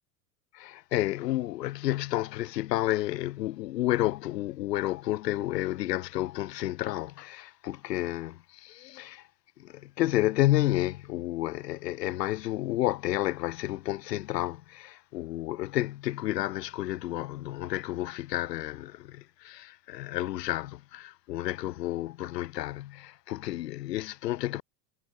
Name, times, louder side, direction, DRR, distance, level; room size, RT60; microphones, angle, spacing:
voice 1, 0.5-9.2 9.6-24.6, left 15 dB, 75° left, 7.6 m, -31 dB
hypercardioid pair, 90°, 49 cm